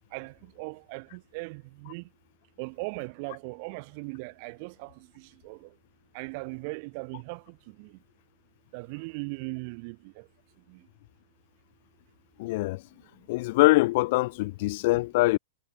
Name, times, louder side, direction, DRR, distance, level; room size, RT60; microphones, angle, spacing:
voice 1, 0.1-2.1 2.6-5.7 6.1-8.0 8.7-10.3 10.7-10.8, right 32 dB, 40° right, 4.2 m, -39 dB
voice 2, 12.4-12.8 13.3-15.4, left 21 dB, 45° left, 0.4 m, -23 dB
supercardioid pair, 160°, 0 cm